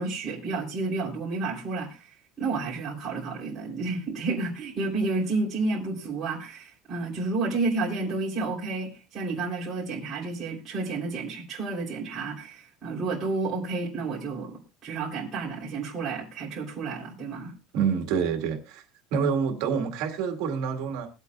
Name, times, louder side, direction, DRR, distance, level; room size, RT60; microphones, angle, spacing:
voice 1, 0.0-2.1 2.4-17.5, right 3 dB, 25° right, 3.3 m, -31 dB
voice 2, 17.7-18.8 19.1-21.1, right 6 dB, 55° right, 2.0 m, -27 dB
22.0 x 8.1 x 2.3 m
cardioid pair, 180°, 0 cm